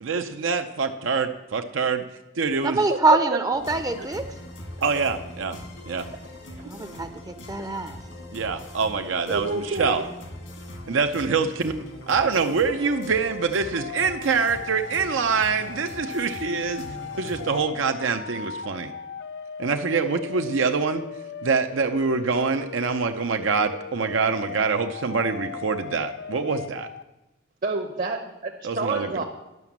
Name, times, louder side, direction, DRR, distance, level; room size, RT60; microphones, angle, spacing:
voice 1, 0.0-2.0 2.4-2.8 4.8-5.6 5.9-6.1 8.3-10.0 10.9-11.7 12.1-16.8 17.1-18.9 19.6-21.0 21.4-26.9 28.6-29.2, right 5 dB, 75° right, 6 dB, 0.6 m, -25 dB
voice 2, 2.6-4.2 6.6-8.0, right 3 dB, 20° right, 9 dB, 0.5 m, -24 dB
sound 1, 3.5-17.7, left 1 dB, 80° left, 2.0 m, -41 dB
voice 3, 9.3-10.0 27.6-29.2, right 3 dB, 45° right, 2 dB, 0.8 m, -29 dB
sound 2, 12.7-27.0, left 7 dB, 60° left, 0.3 m, -38 dB
11.0 x 5.8 x 7.2 m, 0.99 s
head